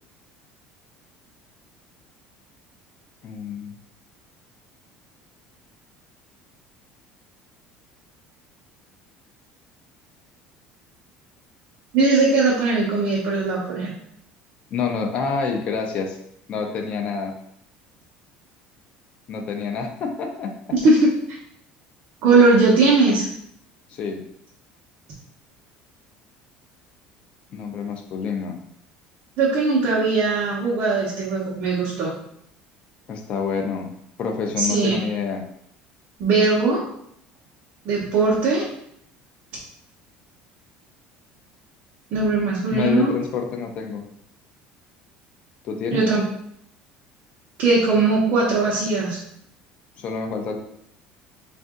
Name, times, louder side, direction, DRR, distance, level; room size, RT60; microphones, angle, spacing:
voice 1, 3.2-3.8 14.7-16.2 16.5-17.3 19.3-20.9 23.9-24.2 27.5-28.6 33.1-33.9 34.2-35.4 42.7-44.1 45.6-46.1 50.0-50.6, left 5 dB, 40° left, 4 dB, 0.5 m, -27 dB
voice 2, 11.9-13.9 20.7-21.1 22.2-23.3 29.4-32.1 34.6-34.9 36.2-36.8 37.8-38.6 42.1-43.1 45.9-46.2 47.6-49.2, right 3 dB, 50° right, -6 dB, 0.9 m, -19 dB
3.6 x 2.6 x 3.6 m, 0.72 s
cardioid pair, 165°, 3 cm